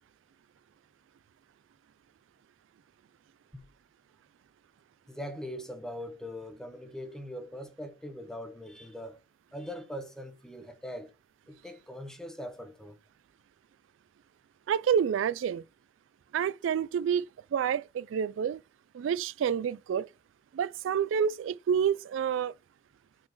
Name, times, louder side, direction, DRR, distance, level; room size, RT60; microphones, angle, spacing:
voice 1, 5.1-9.2 9.5-11.1 11.5-13.0, equal, 5° left, 1.1 m, -41 dB
voice 2, 14.7-15.6 16.3-18.6 18.9-20.1 20.5-22.5, right 8 dB, 75° right, 0.3 m, -28 dB
6.2 x 4.4 x 5.8 m
head